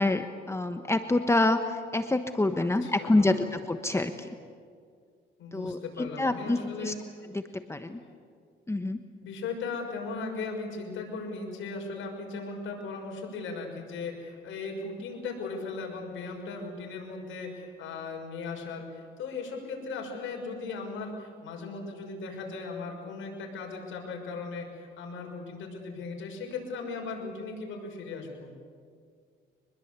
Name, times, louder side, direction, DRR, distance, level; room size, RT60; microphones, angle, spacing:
voice 1, 0.0-4.3 5.5-6.9 7.3-8.0 8.7-9.0, left 2 dB, 15° left, 8 dB, 1.2 m, -27 dB
voice 2, 2.6-3.4 5.4-7.0 9.2-28.5, left 4 dB, 80° left, 1 dB, 6.1 m, -37 dB
25.5 x 21.0 x 8.3 m, 2.1 s
cardioid pair, 90°, 20 cm